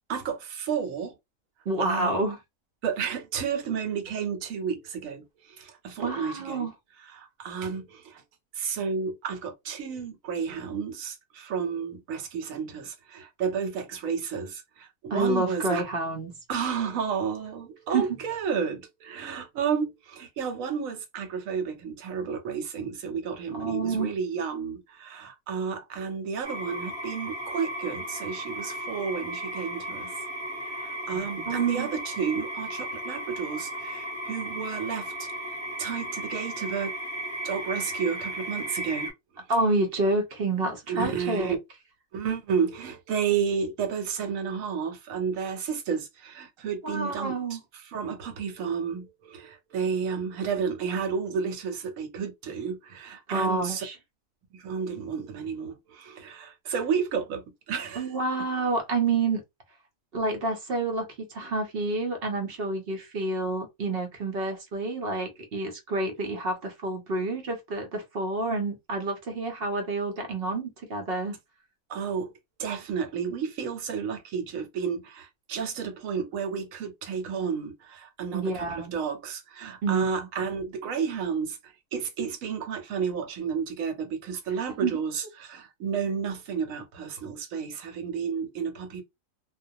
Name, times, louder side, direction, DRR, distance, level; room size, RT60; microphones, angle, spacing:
voice 1, 0.1-1.1 1.8-2.1 2.8-6.7 7.0-8.2 8.5-15.8 16.5-30.1 30.7-35.3 35.8-36.9 37.4-39.1 39.4-39.5 40.9-41.6 42.1-47.6 47.8-53.8 54.5-58.1 71.9-72.3 72.6-81.6 81.9-89.0, right 6 dB, 75° right, 1.1 m, -31 dB
voice 2, 1.7-2.4 6.0-6.7 15.1-16.3 17.9-18.1 23.5-24.1 31.5-31.9 39.5-41.6 46.8-47.6 53.3-54.0 58.0-59.4 60.1-71.4 78.3-79.0 79.8-80.0 84.8-84.9, right 3 dB, 55° right, 0.7 m, -28 dB
sound 1, 26.4-39.1, right 1 dB, 20° right, 0.8 m, -35 dB
2.2 x 2.2 x 2.7 m
omnidirectional pair, 1.4 m